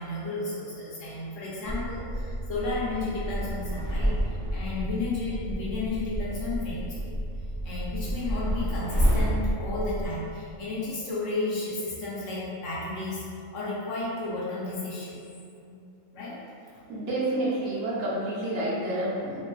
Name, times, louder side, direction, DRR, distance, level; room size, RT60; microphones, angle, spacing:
voice 1, 0.0-7.2 7.6-15.2 15.7-15.8 16.1-16.4 16.7-16.8, left 2 dB, 70° left, -7 dB, 0.9 m, -33 dB
sound 1, 1.6-10.1, equal, 35° right, 0.5 m, -30 dB
voice 2, 16.9-19.4, right 1 dB, 70° right, -7 dB, 0.9 m, -29 dB
2.6 x 2.4 x 2.2 m, 2.5 s
omnidirectional pair, 1.5 m